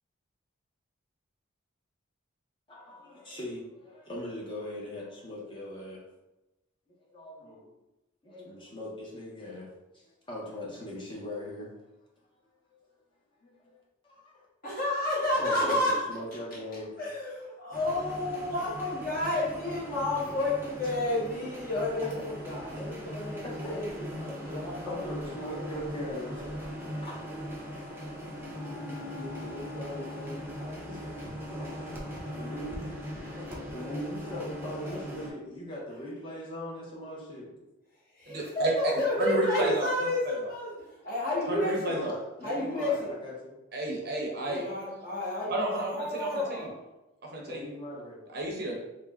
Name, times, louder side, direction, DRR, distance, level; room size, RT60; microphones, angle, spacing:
voice 1, 2.7-6.0 7.1-7.7 8.2-9.7 9.9-11.7 12.7-12.8 13.4-13.7 14.1-14.3 15.4-17.0 22.2-22.3 22.8-22.9 23.4-23.8 24.1-24.3 24.8-27.1 30.9-31.1 31.5-31.7 32.3-33.0 33.7-37.6 41.5-43.6 47.4-48.2, left 1 dB, 25° left, -5 dB, 0.7 m, -40 dB
voice 2, 14.6-16.1 17.0-22.2 22.4-25.1 25.4-26.1 26.3-26.6 28.7-31.3 31.8-32.5 33.3-35.0 38.2-42.0 42.4-43.1 44.3-46.8, left 1 dB, 45° left, -6 dB, 1.1 m, -32 dB
sound 1, 17.7-35.3, equal, 10° right, 0.5 m, -40 dB
Wind instrument woodwind instrument, 28.4-35.1, left 9 dB, 60° left, 0.6 m, -49 dB
voice 3, 38.3-38.7 39.2-40.5 41.5-42.2 43.7-45.0 45.5-46.7 47.3-47.7 48.3-48.8, right 1 dB, 50° right, -1 dB, 0.7 m, -32 dB
3.4 x 2.1 x 3.4 m, 0.99 s
head